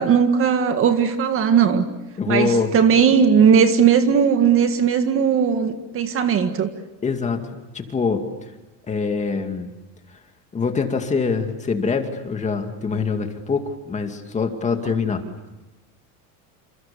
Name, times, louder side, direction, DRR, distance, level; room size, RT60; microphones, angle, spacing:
voice 1, 0.0-1.8 2.3-6.7, right 7 dB, 30° right, 7 dB, 1.8 m, -17 dB
voice 2, 2.2-2.7 7.0-7.4 7.7-8.5 8.9-9.7 10.5-15.2, left 5 dB, 15° left, 5 dB, 2.3 m, -24 dB
29.0 x 29.0 x 7.0 m, 1.1 s
cardioid pair, 165°, 41 cm